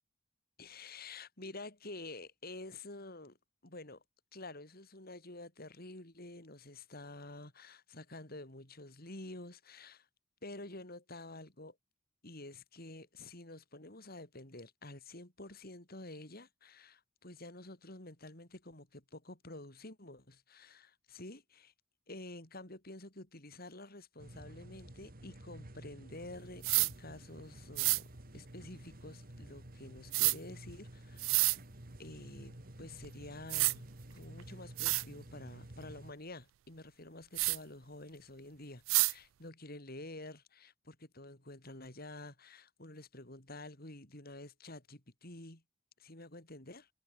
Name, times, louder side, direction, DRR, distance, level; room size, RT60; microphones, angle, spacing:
voice 1, 0.6-3.4 3.6-4.0 4.3-10.1 10.4-11.8 12.2-21.7 22.1-28.1 28.3-31.5 32.0-33.8 34.1-45.6 46.0-46.9, left 2 dB, 50° left, 4.7 m, -49 dB
sound 1, 24.2-36.1, right 1 dB, 45° right, 2.2 m, -52 dB
sound 2, 26.6-26.9 27.8-28.0 30.1-30.4 31.2-31.6 33.0-33.1 33.5-33.7 34.4-34.5 34.8-35.0 37.4-37.6 38.9-39.1, right 23 dB, 75° right, 0.3 m, -28 dB
head